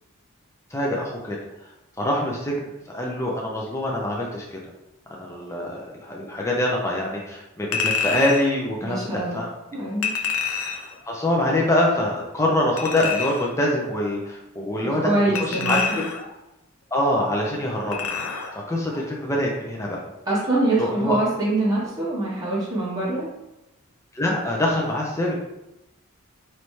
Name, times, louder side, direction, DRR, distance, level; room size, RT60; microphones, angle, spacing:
voice 1, 0.7-1.4 2.0-2.5 2.9-4.6 5.2-9.5 11.1-16.0 16.9-18.1 18.5-20.0 20.8-21.2 24.1-25.4, left 1 dB, 15° left, -2 dB, 0.5 m, -24 dB
Chink clink, 7.7-8.5 10.0-10.9 12.8-13.5 15.3-16.3 17.9-18.5 18.9-19.0, left 6 dB, 80° left, 0.6 m, -27 dB
voice 2, 8.8-9.4 9.7-10.1 14.8-16.0 20.3-23.3, right 2 dB, 15° right, -8 dB, 0.9 m, -24 dB
4.0 x 3.2 x 3.1 m, 0.92 s
head